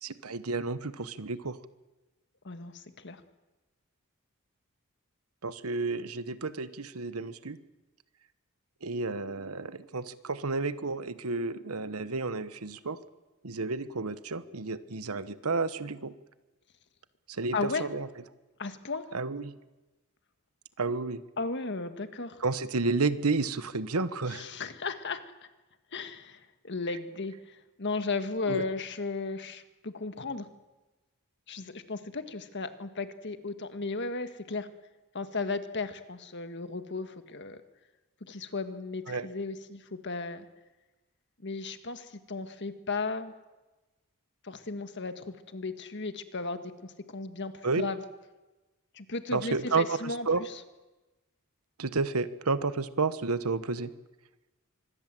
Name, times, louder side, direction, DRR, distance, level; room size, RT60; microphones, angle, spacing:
voice 1, 0.0-1.6 5.4-7.6 8.8-13.0 13.4-16.1 17.3-18.1 19.1-19.5 20.8-21.2 22.4-24.5 28.5-28.7 39.1-39.3 47.6-47.9 49.3-50.4 51.8-53.9, right 3 dB, 85° right, 13 dB, 1.2 m, -31 dB
voice 2, 2.4-3.2 17.5-17.9 18.6-19.1 21.4-22.4 24.3-25.2 25.9-30.5 31.5-34.7 35.1-37.6 38.2-40.5 41.4-43.3 44.4-48.0 48.9-50.6, left 3 dB, 55° left, 9 dB, 1.7 m, -35 dB
25.0 x 21.0 x 7.7 m, 1.1 s
head